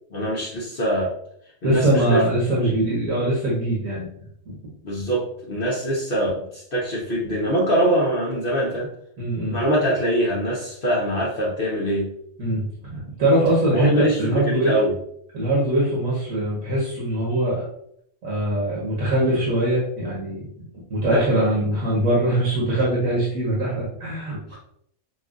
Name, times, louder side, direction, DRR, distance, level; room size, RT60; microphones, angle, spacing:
voice 1, 0.1-1.1 1.6-2.2 2.7-2.8 4.8-8.9 9.5-12.1 13.7-14.9 21.1-21.2 24.5-24.6, right 1 dB, 45° left, -5 dB, 0.9 m, -23 dB
voice 2, 1.6-4.1 4.5-4.6 9.2-9.6 12.4-14.8 15.3-17.7 18.2-20.5 20.9-24.4, right 1 dB, 75° right, -5 dB, 1.5 m, -22 dB
6.2 x 2.3 x 2.4 m, 0.69 s
omnidirectional pair, 1.4 m